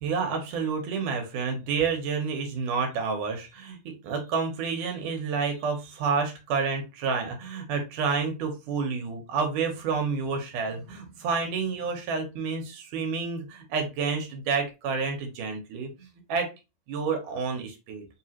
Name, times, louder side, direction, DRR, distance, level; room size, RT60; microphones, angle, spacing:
voice 1, 0.0-16.5 16.9-18.1, right 5 dB, 80° right, 3 dB, 2.5 m, -29 dB
5.4 x 2.9 x 2.9 m, 0.27 s
omnidirectional pair, 3.6 m